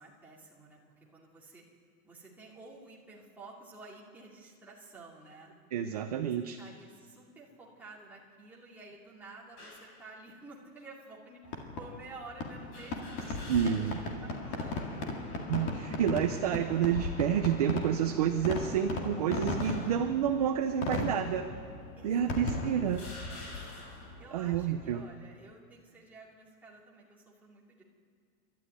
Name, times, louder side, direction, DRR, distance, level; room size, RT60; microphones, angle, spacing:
voice 1, 0.0-1.6 2.0-5.5 6.2-15.2 20.8-20.9 21.2-21.5 22.0-23.0 23.3-23.7 24.0-27.8, right 3 dB, 5° right, -5 dB, 2.5 m, -52 dB
voice 2, 5.7-6.6 13.5-14.0 15.5-21.5 22.0-23.0 24.3-25.0, right 9 dB, 30° right, 7 dB, 0.5 m, -29 dB
sound 1, 9.6-10.0 10.8-10.9 12.7-14.2 14.6-14.7 15.8-16.3 17.0-17.2 18.2-19.0 19.6-20.1 21.0-21.1 22.0-22.1 22.8-24.2, left 2 dB, 50° left, 8.0 m, -49 dB
Fireworks, 11.5-25.0, left 2 dB, 25° left, 2.1 m, -37 dB
29.5 x 12.5 x 9.6 m, 2.1 s
supercardioid pair, 180°, 43 cm